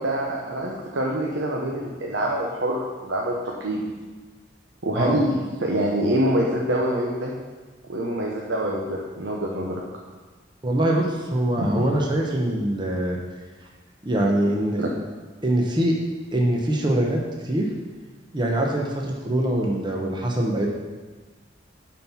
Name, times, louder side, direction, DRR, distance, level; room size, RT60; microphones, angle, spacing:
voice 1, 0.0-3.3 3.6-3.8 4.8-7.3 7.9-9.8 11.6-11.8 14.8-14.9, right 1 dB, 75° right, -2 dB, 1.0 m, -25 dB
voice 2, 10.6-13.2 14.0-14.8 15.4-16.0 16.3-17.7 18.3-20.7, right 1 dB, 25° right, -1 dB, 0.9 m, -23 dB
9.3 x 4.4 x 5.7 m, 1.3 s
head